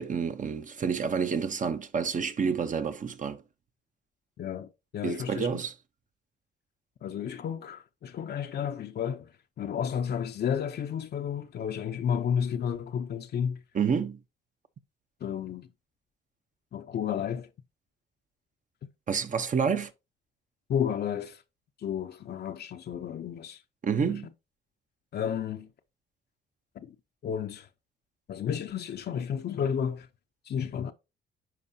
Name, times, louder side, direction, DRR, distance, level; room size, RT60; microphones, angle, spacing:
voice 1, 0.0-3.4 5.0-5.7 13.7-14.2 19.1-19.9 23.8-24.3, right 6 dB, 40° right, 0.8 m, -29 dB
voice 2, 4.4-5.5 7.0-9.3 9.6-13.6 15.2-15.7 16.7-17.5 20.7-21.4 21.8-23.6 24.0-24.2 25.1-25.7 26.8-26.9 27.2-27.7 28.3-30.1 30.5-30.9, left 8 dB, 55° left, 0.6 m, -32 dB
11.0 x 4.5 x 2.7 m
cardioid pair, 90°, 20 cm